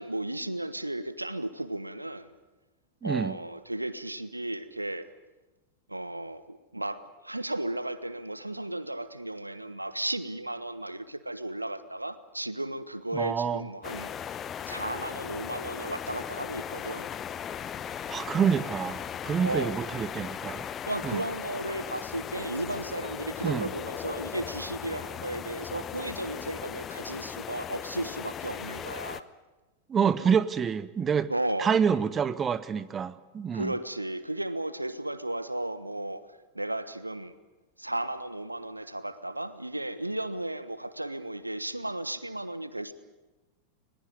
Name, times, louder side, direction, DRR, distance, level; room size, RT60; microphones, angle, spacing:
voice 1, 0.0-2.3 3.0-5.1 5.9-14.1 14.7-17.1 19.4-19.8 20.9-29.2 31.3-31.7 33.5-36.2 36.5-37.3 37.8-42.9, right 1 dB, 85° right, 13 dB, 1.2 m, -34 dB
voice 2, 3.0-3.3 13.1-13.7 18.1-20.7 21.0-21.2 23.4-23.7 29.9-31.3 31.6-33.7, right 7 dB, 20° right, 16 dB, 1.0 m, -27 dB
sound 1, 13.8-29.2, left 8 dB, 25° left, 0.9 m, -38 dB
21.0 x 20.5 x 9.6 m, 1.1 s
figure-of-eight pair, 90°, 0 cm